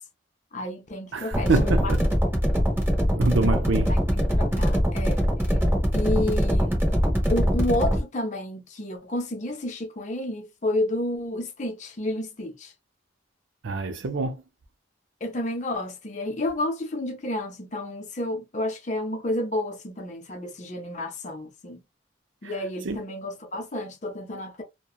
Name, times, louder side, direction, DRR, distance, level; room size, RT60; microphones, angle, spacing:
voice 1, 0.5-1.9 3.9-5.2 5.9-6.8 7.3-12.7 15.2-21.8 22.4-24.6, left 1 dB, 40° left, 0.6 m, -30 dB
voice 2, 1.1-2.0 3.2-3.9 13.6-14.4 22.4-22.5 22.8-23.0, right 3 dB, 80° right, 0.5 m, -25 dB
sound 1, 1.3-8.0, equal, 10° right, 0.9 m, -23 dB
2.8 x 2.2 x 2.3 m
head